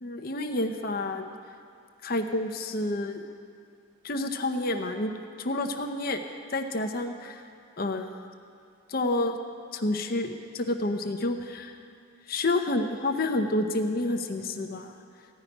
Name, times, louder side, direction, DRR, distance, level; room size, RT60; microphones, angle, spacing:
voice 1, 0.0-1.3 2.0-3.2 4.0-6.2 6.5-7.4 7.8-8.2 8.9-9.4 9.7-11.8 12.3-14.9, left 2 dB, 45° left, 4 dB, 0.7 m, -29 dB
15.5 x 5.7 x 9.9 m, 2.5 s
head